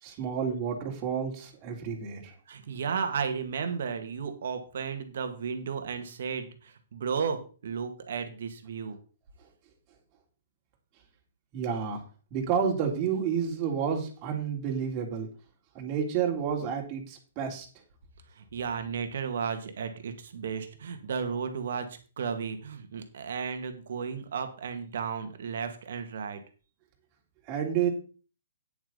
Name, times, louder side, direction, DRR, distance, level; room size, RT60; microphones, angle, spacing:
voice 1, 0.0-2.3 11.5-12.0 12.3-15.3 15.7-17.7 27.5-27.9, right 7 dB, 35° right, 0 dB, 3.3 m, -30 dB
voice 2, 2.5-9.0 18.3-26.4, right 6 dB, 65° right, 7 dB, 2.1 m, -34 dB
9.6 x 9.2 x 4.0 m, 0.37 s
hypercardioid pair, 125°, 0 cm